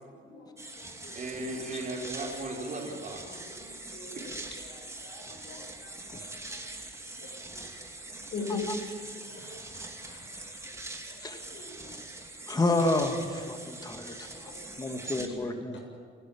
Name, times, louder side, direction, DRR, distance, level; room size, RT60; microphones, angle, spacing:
voice 1, 0.0-1.2 1.7-1.8 3.3-4.3 4.6-6.6 7.0-7.6 8.3-8.6 9.0-10.5 11.1-11.9 14.1-14.6 14.9-15.8, left 4 dB, 65° left, 1 dB, 7.3 m, -44 dB
sound 1, 0.6-15.3, right 2 dB, 15° right, 2.7 m, -43 dB
voice 2, 1.1-3.2, right 2 dB, 45° right, -6 dB, 4.8 m, -36 dB
voice 3, 12.5-14.3 14.8-15.8, left 2 dB, 20° left, 5 dB, 2.2 m, -30 dB
28.5 x 12.0 x 8.8 m, 2.1 s
cardioid pair, 90°, 20 cm